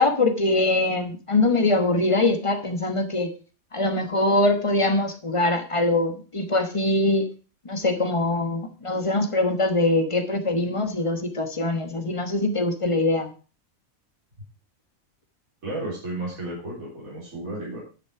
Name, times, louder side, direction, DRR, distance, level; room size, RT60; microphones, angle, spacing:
voice 1, 0.0-3.3 3.7-7.2 7.6-13.3, left 2 dB, 25° left, 7 dB, 1.1 m, -23 dB
voice 2, 15.6-17.8, right 2 dB, 75° right, -6 dB, 4.4 m, -33 dB
10.5 x 6.2 x 4.8 m, 0.36 s
omnidirectional pair, 1.5 m